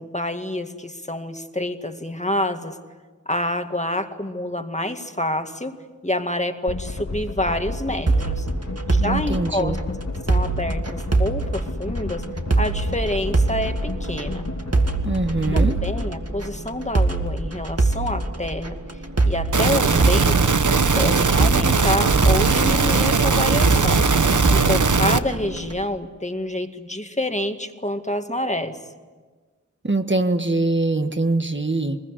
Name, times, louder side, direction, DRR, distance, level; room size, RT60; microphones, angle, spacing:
voice 1, 0.0-2.8 3.3-5.8 6.0-8.5 8.9-9.8 10.3-12.2 12.6-14.5 15.3-20.6 21.0-24.1 24.5-28.8, left 1 dB, 25° left, 6 dB, 2.0 m, -27 dB
sound 1, 6.7-16.1, left 2 dB, 60° left, 1.9 m, -32 dB
sound 2, 8.1-25.8, right 2 dB, 55° right, 2.2 m, -24 dB
voice 2, 9.0-9.7 15.0-15.8 29.8-32.0, right 2 dB, 40° right, 7 dB, 1.6 m, -23 dB
sound 3, 19.5-25.2, right 4 dB, 80° right, 1.0 m, -19 dB
24.5 x 22.0 x 10.0 m, 1.4 s
wide cardioid pair, 50°, 30 cm